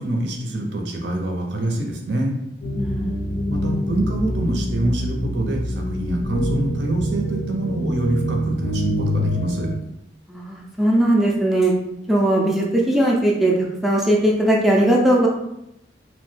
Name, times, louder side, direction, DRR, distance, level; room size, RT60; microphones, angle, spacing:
voice 1, 0.0-2.4 3.5-9.7, right 1 dB, 70° right, 1 dB, 0.6 m, -25 dB
sound 1, 2.6-9.7, equal, 85° left, 0.6 m, -25 dB
voice 2, 2.8-3.2 10.3-11.7 12.1-13.5 13.8-15.3, right 1 dB, ahead, -3 dB, 0.4 m, -19 dB
2.9 x 2.1 x 3.1 m, 0.85 s
head